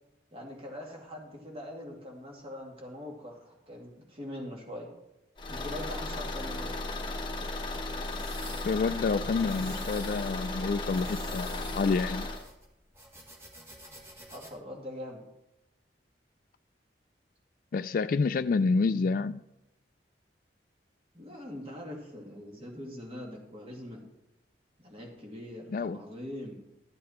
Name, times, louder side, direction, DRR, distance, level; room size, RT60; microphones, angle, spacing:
voice 1, 0.3-4.9 5.5-6.7 14.3-15.2 21.1-24.1 24.8-26.6, left 1 dB, 30° right, 2.3 m, -42 dB
Car / Engine, 5.4-12.4, left 2 dB, 25° left, 1.1 m, -35 dB
sound 1, 7.7-14.5, right 1 dB, 15° right, 1.7 m, -50 dB
voice 2, 8.6-12.3 17.7-19.4 25.7-26.0, left 4 dB, 50° left, 0.3 m, -28 dB
12.5 x 8.5 x 4.3 m
head